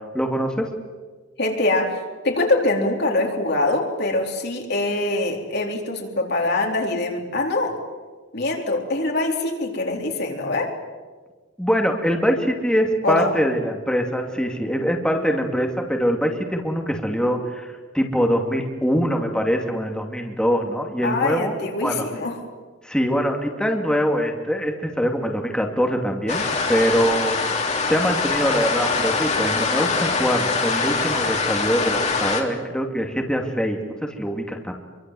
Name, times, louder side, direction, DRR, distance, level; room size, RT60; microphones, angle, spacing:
voice 1, 0.1-0.6 11.6-21.5 21.8-22.1 22.8-34.7, equal, 5° left, 2 dB, 2.5 m, -23 dB
voice 2, 1.4-7.8 8.3-10.7 13.0-13.3 21.0-22.4, left 2 dB, 55° left, 1 dB, 4.3 m, -23 dB
sound 1, 26.3-32.4, left 4 dB, 35° left, 3.3 m, -23 dB
26.5 x 24.0 x 7.8 m, 1.4 s
head